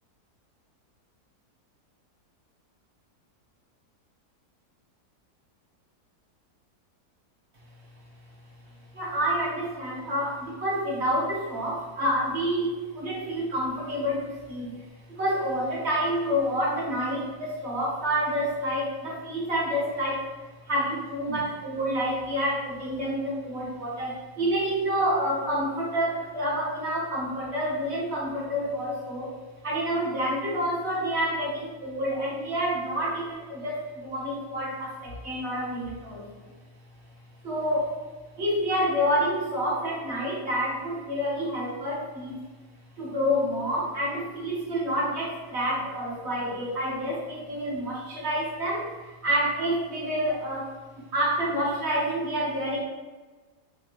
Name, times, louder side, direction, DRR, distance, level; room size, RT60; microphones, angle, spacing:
voice 1, 8.9-20.3 20.7-29.3 29.6-36.5 37.4-38.0 38.4-42.4 43.0-50.7 51.0-52.8, equal, 55° right, -5 dB, 0.9 m, -28 dB
3.3 x 2.0 x 2.8 m, 1.3 s
omnidirectional pair, 1.7 m